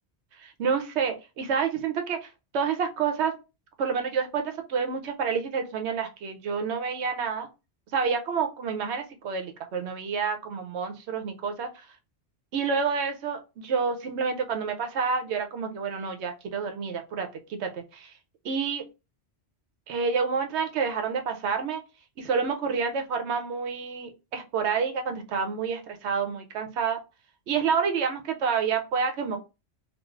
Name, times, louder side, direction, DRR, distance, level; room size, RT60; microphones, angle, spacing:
voice 1, 0.4-3.3 3.8-7.5 7.9-11.9 12.5-18.1 18.4-18.8 19.9-21.8 22.2-27.0 27.5-29.4, right 6 dB, 80° right, 6 dB, 0.9 m, -28 dB
3.1 x 2.3 x 2.3 m, 0.28 s
omnidirectional pair, 1.1 m